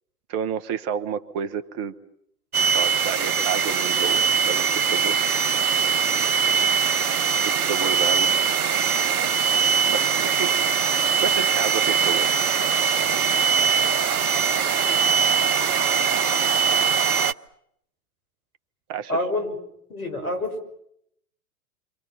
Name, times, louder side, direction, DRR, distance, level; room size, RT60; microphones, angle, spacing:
voice 1, 0.3-1.9 2.6-5.3 5.9-6.1 7.4-8.3 9.9-10.5 11.2-12.3 18.9-19.1, right 7 dB, 35° right, 11 dB, 1.4 m, -30 dB
sound 1, 2.5-17.3, right 6 dB, 70° right, 0.9 m, -21 dB
voice 2, 19.1-19.6 19.9-20.6, left 2 dB, 70° left, 6 dB, 6.1 m, -27 dB
29.5 x 25.5 x 5.8 m, 0.73 s
figure-of-eight pair, 100°, 45 cm